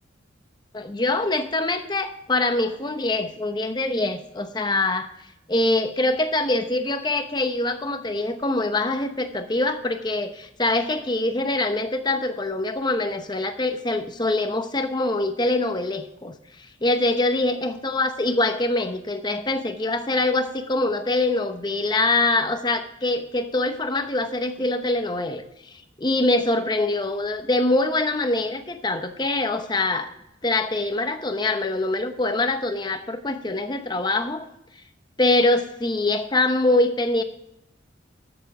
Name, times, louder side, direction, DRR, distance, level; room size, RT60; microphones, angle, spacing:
voice 1, 0.7-5.1 5.5-30.1 30.4-34.5 35.2-37.2, left 2 dB, 25° left, 8 dB, 0.8 m, -24 dB
13.0 x 7.0 x 4.9 m, 0.83 s
head